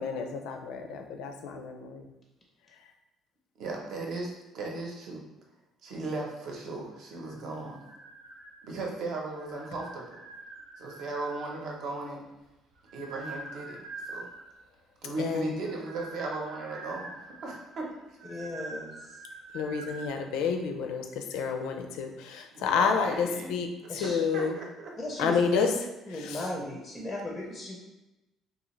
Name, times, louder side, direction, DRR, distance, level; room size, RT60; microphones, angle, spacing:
voice 1, 0.0-2.1 15.2-15.5 19.5-24.6 25.2-25.7 26.2-26.4, left 6 dB, 90° left, 5 dB, 0.4 m, -29 dB
voice 2, 3.6-5.2 5.8-7.8 8.6-10.2 10.8-12.3 12.9-14.3 15.0-18.1 22.5-23.5 24.0-24.9, right 3 dB, 55° right, -1 dB, 0.8 m, -37 dB
sound 1, 7.1-8.9 9.3-11.8 12.5-14.6 15.5-20.1, right 2 dB, 90° right, 0.5 m, -45 dB
voice 3, 18.3-19.2 23.9-24.2 25.0-25.7 26.1-27.8, left 1 dB, 10° left, -1 dB, 0.5 m, -36 dB
3.7 x 2.8 x 3.1 m, 1.0 s
cardioid pair, 160°, 0 cm